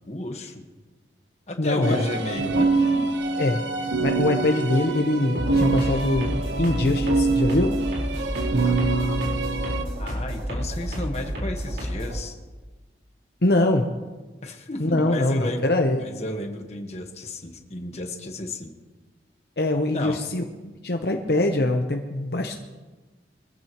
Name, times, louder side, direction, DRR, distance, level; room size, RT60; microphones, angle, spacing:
voice 1, 0.1-0.6 1.5-3.1 8.6-9.2 10.0-12.4 14.4-18.7 19.9-20.2, left 1 dB, 35° left, 4 dB, 1.4 m, -33 dB
voice 2, 1.6-2.0 3.4-3.6 4.0-7.8 13.4-13.9 14.8-16.0 19.6-22.6, left 2 dB, 60° left, 4 dB, 0.9 m, -23 dB
sound 1, 1.8-9.8, right 3 dB, 85° right, 1.1 m, -25 dB
sound 2, 5.4-12.2, equal, 65° right, 4.3 m, -31 dB
23.0 x 14.5 x 3.0 m, 1.3 s
head